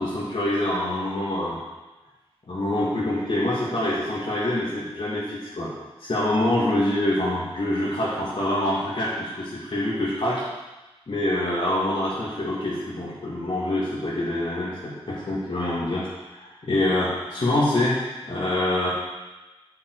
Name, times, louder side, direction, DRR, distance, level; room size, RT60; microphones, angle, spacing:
voice 1, 0.0-1.6 2.5-5.7 6.0-10.4 11.1-18.0 18.2-18.9, left 1 dB, 75° left, -10 dB, 2.3 m, -25 dB
8.6 x 7.5 x 4.8 m, 1.1 s
wide cardioid pair, 60°, 10 cm